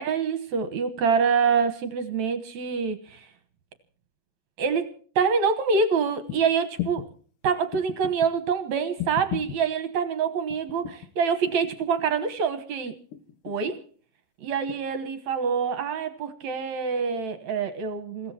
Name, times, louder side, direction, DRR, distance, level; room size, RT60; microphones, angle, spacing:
voice 1, 0.0-3.3 4.6-7.1 7.4-13.0 13.4-13.8 14.4-18.3, right 6 dB, 60° right, 10 dB, 2.1 m, -26 dB
sound 1, 6.3-6.4 6.8-7.1 7.7-8.3 9.0-9.6 10.5-11.1 11.5-12.1 13.1-13.8 14.7-14.8, left 12 dB, 70° left, 2.6 m, -35 dB
28.5 x 16.0 x 2.9 m, 0.43 s
omnidirectional pair, 4.3 m